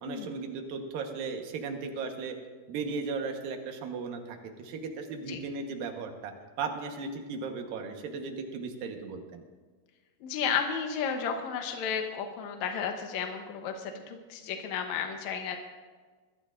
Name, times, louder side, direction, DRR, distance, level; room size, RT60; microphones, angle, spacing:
voice 1, 0.0-2.4 2.7-6.3 6.6-9.4, right 4 dB, 70° right, 4 dB, 2.8 m, -36 dB
voice 2, 10.2-15.6, left 7 dB, 80° left, 5 dB, 1.6 m, -33 dB
21.5 x 14.0 x 2.5 m, 1.4 s
omnidirectional pair, 4.5 m